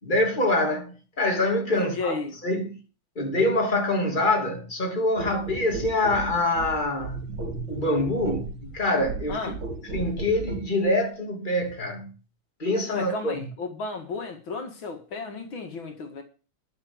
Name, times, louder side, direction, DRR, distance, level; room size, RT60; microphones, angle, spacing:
voice 1, 0.0-2.2 2.4-2.8 3.2-7.2 7.7-9.4 9.9-12.1 12.6-13.4, left 1 dB, 25° left, 3.1 m, -25 dB
voice 2, 1.7-2.3 9.3-9.6 12.9-16.2, left 4 dB, 80° left, 2.7 m, -33 dB
sound 1, 5.2-10.7 11.6-11.8, right 3 dB, 90° right, 3.3 m, -35 dB
12.0 x 6.5 x 8.0 m
omnidirectional pair, 2.2 m